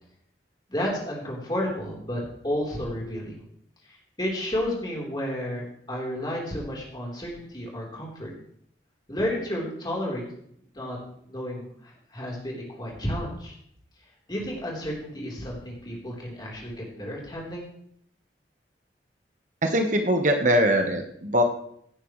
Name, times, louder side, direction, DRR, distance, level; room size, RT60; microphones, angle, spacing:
voice 1, 0.7-3.4 3.8-8.3 9.1-10.2 10.7-11.0 11.3-13.5 14.3-17.7, equal, 25° left, -3 dB, 3.8 m, -32 dB
voice 2, 19.6-21.4, equal, 45° right, 4 dB, 1.2 m, -22 dB
16.5 x 10.5 x 3.2 m, 0.67 s
head